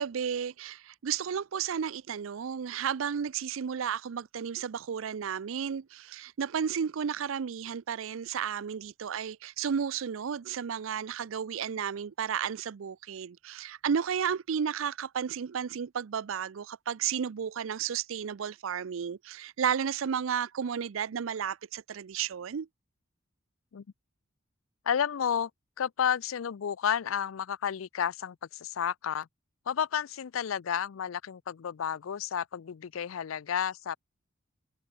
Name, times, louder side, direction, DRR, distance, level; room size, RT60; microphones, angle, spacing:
voice 1, 0.0-22.7, right 7 dB, 75° right, 0.5 m, -33 dB
voice 2, 24.8-25.5 25.8-29.3 29.7-34.0, left 8 dB, 85° left, 0.4 m, -31 dB
head